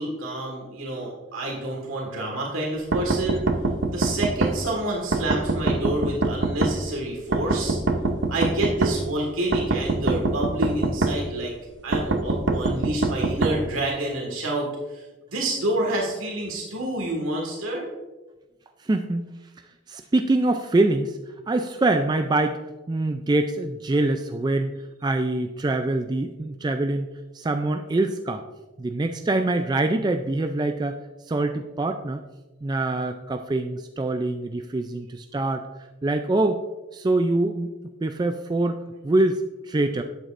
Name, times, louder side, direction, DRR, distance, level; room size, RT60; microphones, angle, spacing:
voice 1, 0.0-3.4 3.9-7.8 8.3-11.5 11.8-14.7 14.9-15.0 15.3-17.8, right 1 dB, 85° right, -1 dB, 1.8 m, -28 dB
sound 1, 2.9-4.5 5.1-6.7 7.3-8.9 9.5-11.1 11.9-13.5, right 2 dB, 60° right, 0.8 m, -23 dB
voice 2, 18.8-19.3 19.9-21.2 21.5-22.6 22.9-24.7 25.0-27.1 27.3-28.4 28.8-31.0 31.3-32.2 32.6-35.7 36.0-36.6 36.9-37.7 38.0-40.0, right 2 dB, 20° right, 6 dB, 0.3 m, -24 dB
11.5 x 8.1 x 2.5 m, 1.1 s
head